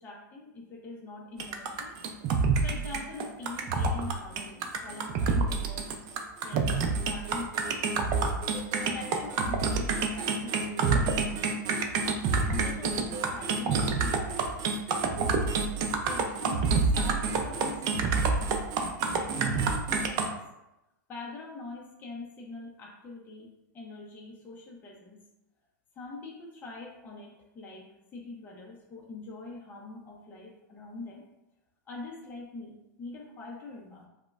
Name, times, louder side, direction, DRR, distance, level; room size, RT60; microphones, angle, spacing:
voice 1, 0.0-2.0 2.6-6.0 6.4-8.2 8.8-11.9 12.4-14.4 15.8-18.7 19.2-20.4 21.1-25.2 25.9-31.2 31.9-34.1, left 3 dB, 20° left, -3 dB, 0.6 m, -44 dB
sound 1, 1.4-20.3, right 4 dB, 35° right, 0.4 m, -28 dB
4.9 x 2.1 x 2.3 m, 0.90 s
hypercardioid pair, 135°, 11 cm